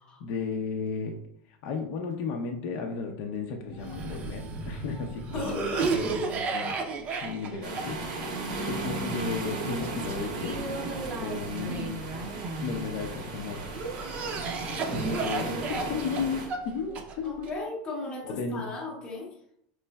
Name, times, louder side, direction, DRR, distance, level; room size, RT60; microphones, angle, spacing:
voice 1, 0.2-1.2 1.5-5.7 6.1-6.8 7.2-10.6 11.2-12.1 12.6-13.7 14.9-17.6 18.2-18.6, left 5 dB, 55° left, 2 dB, 0.5 m, -34 dB
Cough, 3.8-13.0 13.6-17.5, right 4 dB, 30° right, 0.5 m, -34 dB
voice 2, 5.3-6.3 11.7-12.0 17.2-19.3, left 2 dB, 20° left, -2 dB, 0.8 m, -36 dB
sound 1, 7.6-16.5, right 2 dB, 90° right, 1.3 m, -36 dB
5.2 x 3.1 x 2.2 m, 0.70 s
supercardioid pair, 160°, 4 cm